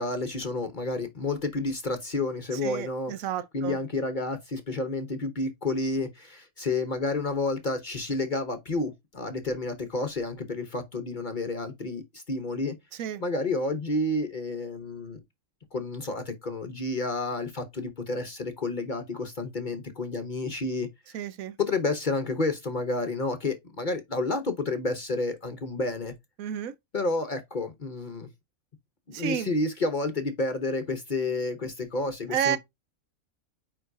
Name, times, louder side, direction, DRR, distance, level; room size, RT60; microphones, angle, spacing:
voice 1, 0.0-3.1 3.5-12.8 13.2-15.2 15.7-21.2 21.6-26.1 26.9-28.3 29.1-32.6, left 2 dB, 40° left, 0.9 m, -30 dB
voice 2, 2.6-3.8 13.0-13.2 21.1-21.6 26.4-26.7 29.1-29.5 32.3-32.6, right 9 dB, 85° right, 1.1 m, -31 dB
9.3 x 3.8 x 2.6 m
omnidirectional pair, 1.4 m